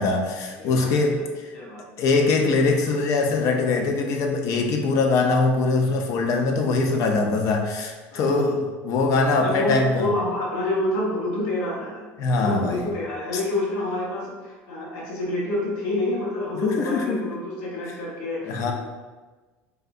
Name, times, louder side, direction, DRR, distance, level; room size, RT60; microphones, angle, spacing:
voice 1, 0.0-1.5 2.0-10.1 12.2-12.9 16.5-17.3 18.4-18.7, left 3 dB, 55° left, 3 dB, 0.5 m, -22 dB
voice 2, 0.6-1.2 1.5-1.8 8.1-8.6 9.4-12.0 12.4-18.7, left 2 dB, 80° left, -3 dB, 0.9 m, -28 dB
3.4 x 2.6 x 2.4 m, 1.3 s
supercardioid pair, 110°, 6 cm